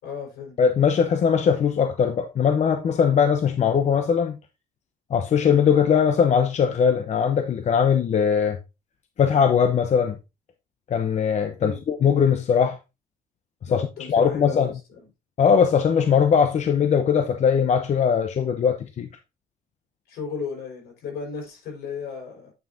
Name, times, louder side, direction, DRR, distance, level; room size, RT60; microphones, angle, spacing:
voice 1, 0.0-0.6 11.6-11.8 13.6-15.1 20.1-22.5, left 5 dB, 70° left, 5.1 m, -35 dB
voice 2, 0.6-4.4 5.1-8.6 9.2-10.2 10.9-12.8 13.7-13.8 14.1-14.7 15.4-19.1, left 7 dB, 45° left, 0.8 m, -20 dB
9.1 x 6.0 x 2.7 m
cardioid pair, 110°, 17 cm